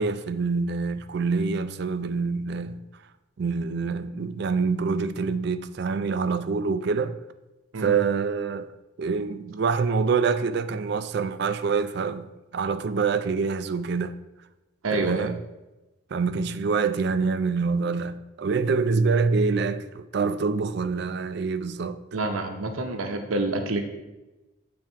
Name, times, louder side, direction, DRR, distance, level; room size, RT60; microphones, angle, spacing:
voice 1, 0.0-2.9 3.4-7.2 7.8-8.7 9.0-12.3 12.5-14.1 14.9-15.4 16.1-22.0, right 4 dB, 50° right, 0.3 m, -26 dB
voice 2, 14.8-15.3 22.1-23.8, right 2 dB, 85° right, 0.7 m, -27 dB
8.7 x 3.5 x 4.5 m
head